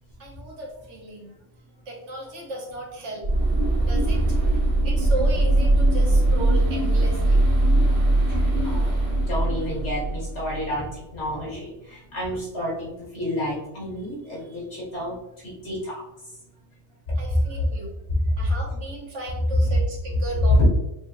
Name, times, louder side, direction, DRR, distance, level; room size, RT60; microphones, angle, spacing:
voice 1, 0.2-1.4 1.9-3.3 3.8-4.6 4.8-7.4 14.3-14.6 17.2-17.9 18.4-20.7, right 1 dB, 80° right, -1 dB, 1.3 m, -35 dB
sound 1, 3.2-10.6, right 1 dB, 65° right, 1.2 m, -21 dB
voice 2, 8.3-8.9 9.3-15.2 15.4-16.0 17.1-17.2 17.6-17.7 19.6-19.7 20.6-20.7, left 1 dB, 75° left, -5 dB, 2.1 m, -29 dB
6.0 x 2.7 x 3.0 m, 0.92 s
omnidirectional pair, 1.2 m